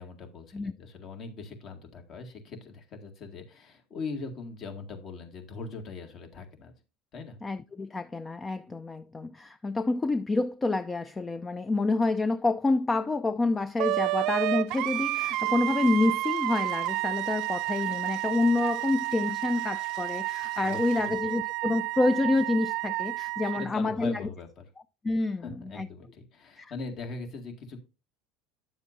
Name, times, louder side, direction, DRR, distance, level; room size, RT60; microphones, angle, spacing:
voice 1, 0.0-6.7 7.1-7.4 20.6-21.1 23.4-24.7 25.4-27.8, left 4 dB, 50° left, 2.0 m, -41 dB
voice 2, 7.4-24.3 25.0-25.5 25.8-25.9 26.6-26.7, left 2 dB, 20° left, 0.4 m, -28 dB
Wind instrument woodwind instrument, 13.8-23.7, right 19 dB, 60° right, 0.3 m, -30 dB
sound 1, 14.7-21.1, left 5 dB, 75° left, 1.9 m, -53 dB
9.8 x 7.2 x 2.6 m
supercardioid pair, 95°, 0 cm